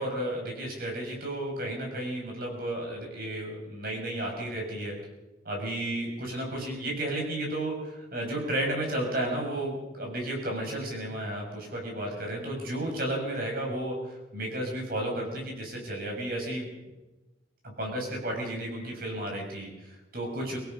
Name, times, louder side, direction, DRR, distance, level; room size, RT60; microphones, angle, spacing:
voice 1, 0.0-4.9 5.4-16.7 17.6-20.6, right 1 dB, 50° right, 0 dB, 6.8 m, -33 dB
25.5 x 18.5 x 5.6 m, 1.1 s
head